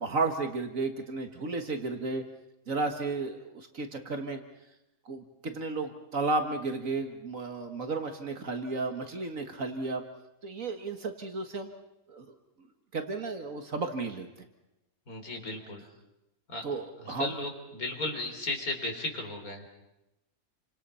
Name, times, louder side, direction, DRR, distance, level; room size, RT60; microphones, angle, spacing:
voice 1, 0.0-2.2 2.7-4.4 5.1-10.0 10.4-11.7 12.1-12.3 12.9-14.5 16.6-17.4, right 3 dB, 65° right, 6 dB, 2.1 m, -33 dB
voice 2, 15.1-15.8 16.5-16.7 17.2-19.7, left 2 dB, 80° left, 3 dB, 4.4 m, -35 dB
29.0 x 25.5 x 5.7 m, 0.91 s
omnidirectional pair, 1.5 m